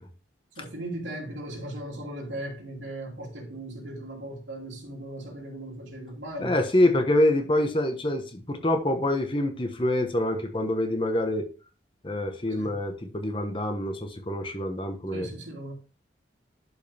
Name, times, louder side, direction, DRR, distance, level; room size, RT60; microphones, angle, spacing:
voice 1, 0.6-6.6 12.6-12.8 15.1-15.7, right 1 dB, 85° right, 3.1 m, -38 dB
voice 2, 6.4-11.4 12.0-15.3, left 1 dB, 25° left, 1.1 m, -26 dB
11.0 x 5.5 x 3.5 m
head